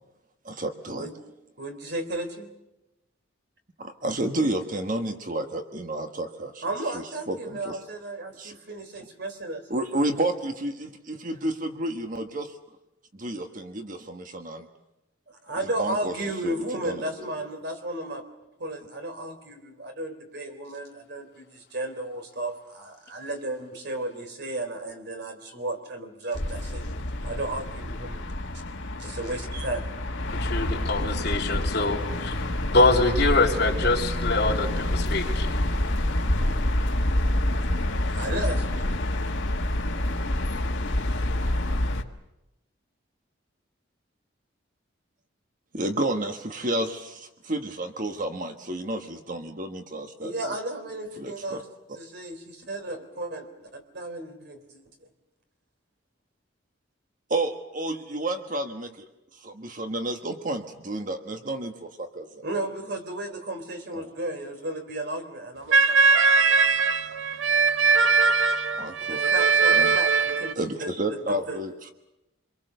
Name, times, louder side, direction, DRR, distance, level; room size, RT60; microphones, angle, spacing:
voice 1, 0.4-1.1 3.8-6.6 6.9-7.8 8.4-8.5 9.7-12.5 13.1-14.7 15.8-16.1 16.4-16.5 16.8-17.3 45.7-50.3 51.2-51.6 57.3-59.1 59.3-62.4 63.9-64.1 68.8-69.2 69.7-69.9 70.6-71.9, right 1 dB, 45° right, 6 dB, 1.4 m, -31 dB
voice 2, 1.6-2.5 6.6-9.8 15.3-18.2 18.6-26.9 27.2-28.2 29.0-29.9 38.1-38.9 50.2-51.7 51.9-54.8 62.4-66.7 69.0-71.6, right 2 dB, 60° right, 6 dB, 3.5 m, -34 dB
sound 1, 26.3-42.0, left 1 dB, 75° left, 1.6 m, -27 dB
voice 3, 30.4-32.3 32.7-35.5, left 2 dB, 55° left, 0 dB, 3.2 m, -24 dB
sound 2, 65.7-70.5, right 4 dB, 85° right, 0.8 m, -20 dB
26.5 x 23.0 x 6.7 m, 0.94 s
head